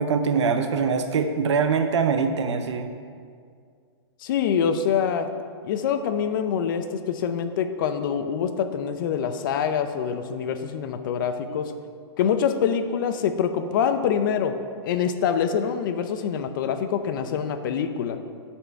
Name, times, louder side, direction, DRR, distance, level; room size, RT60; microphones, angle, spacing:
voice 1, 0.0-2.9 11.5-11.6, right 5 dB, 85° right, 7 dB, 0.6 m, -23 dB
voice 2, 4.2-5.3 5.6-11.7 12.2-14.6 14.8-18.2, left 7 dB, 50° left, 9 dB, 0.6 m, -25 dB
11.0 x 4.4 x 4.6 m, 2.2 s
hypercardioid pair, 160°, 14 cm